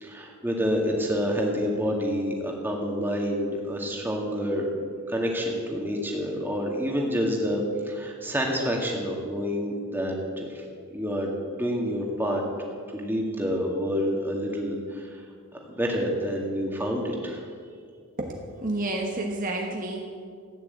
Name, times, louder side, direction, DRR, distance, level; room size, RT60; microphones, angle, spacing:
voice 1, 0.0-4.6 5.1-10.6 10.9-11.3 11.6-12.4 12.9-15.2 15.7-17.4, equal, 10° right, -1 dB, 2.0 m, -28 dB
voice 2, 18.2-20.0, right 2 dB, 40° right, 0 dB, 1.3 m, -30 dB
14.5 x 9.8 x 8.2 m, 2.1 s
head